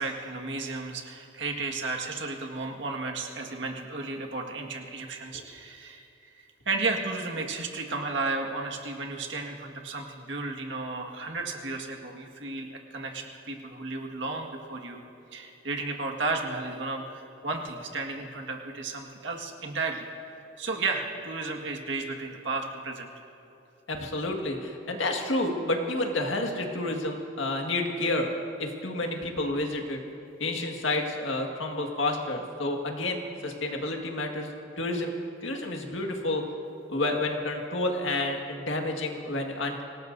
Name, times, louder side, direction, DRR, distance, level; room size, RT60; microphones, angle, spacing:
voice 1, 0.0-6.0 6.6-15.0 15.3-20.0 20.6-23.1, right 3 dB, 70° right, 1 dB, 1.7 m, -33 dB
voice 2, 23.9-28.3 28.6-30.0 30.4-34.5 34.8-35.1 35.4-36.4 36.9-39.8, left 2 dB, 80° left, 2 dB, 1.8 m, -30 dB
25.0 x 19.0 x 2.7 m, 2.7 s
head